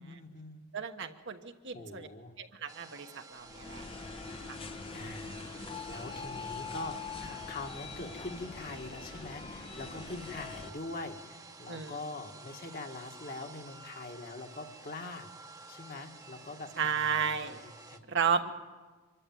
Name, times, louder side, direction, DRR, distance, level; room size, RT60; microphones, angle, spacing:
voice 1, 0.0-0.6 1.7-2.3 4.9-15.3 15.7-17.3 17.6-18.0, left 2 dB, 45° left, 3 dB, 1.7 m, -43 dB
voice 2, 0.7-2.1 2.4-3.8 4.5-4.6 11.7-12.0 16.8-17.6 18.1-18.5, right 6 dB, 55° right, 6 dB, 1.2 m, -33 dB
sound 1, 2.7-18.0, right 3 dB, 15° right, 1.0 m, -51 dB
sound 2, 3.4-10.7, left 4 dB, 25° left, 0.8 m, -43 dB
25.0 x 13.0 x 9.2 m, 1.4 s
head